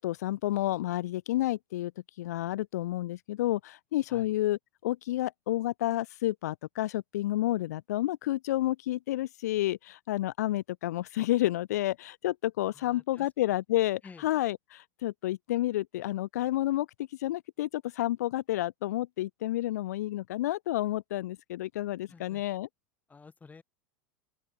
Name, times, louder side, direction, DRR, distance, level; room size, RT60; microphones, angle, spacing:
voice 1, 0.0-1.9 2.2-22.7, left 15 dB, 80° left, 0.4 m, -30 dB
voice 2, 12.7-13.3 14.0-14.3 22.1-22.4 23.1-23.6, left 4 dB, 20° left, 7.1 m, -52 dB
open air
hypercardioid pair, 100°, 9 cm